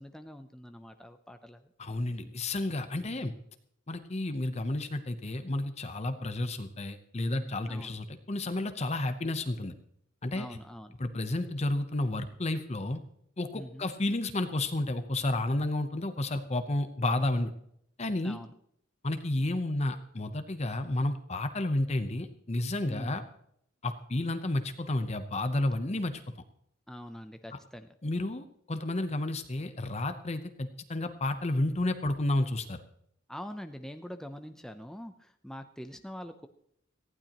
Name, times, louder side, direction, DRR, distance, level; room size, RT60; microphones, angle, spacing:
voice 1, 0.0-1.7 3.0-3.2 7.7-8.0 10.3-10.9 13.5-13.9 18.2-18.5 22.8-23.2 26.9-27.9 33.3-36.5, equal, 5° left, 7 dB, 0.6 m, -44 dB
voice 2, 1.8-3.3 3.9-9.7 10.2-10.6 11.0-13.0 13.4-17.5 18.0-18.4 19.0-23.2 23.8-26.2 27.5-27.6 28.0-32.8, left 2 dB, 30° left, 9 dB, 0.8 m, -31 dB
18.5 x 15.0 x 3.0 m, 0.69 s
head